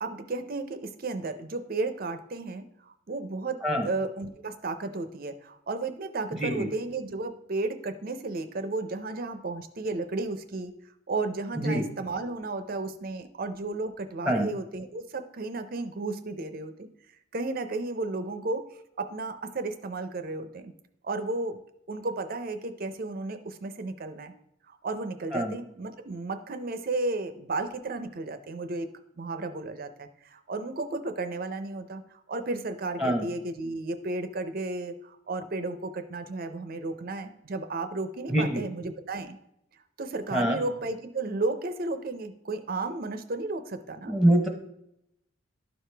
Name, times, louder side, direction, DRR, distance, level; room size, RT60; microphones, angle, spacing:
voice 1, 0.0-10.7 11.1-16.9 17.3-18.6 19.0-20.7 21.0-21.6 21.9-24.3 24.7-28.9 29.2-39.4 40.0-44.1, right 3 dB, 45° right, 9 dB, 0.5 m, -33 dB
voice 2, 38.3-38.6 40.3-40.6 44.1-44.5, right 1 dB, ahead, 3 dB, 0.9 m, -24 dB
12.0 x 4.9 x 3.3 m, 0.79 s
head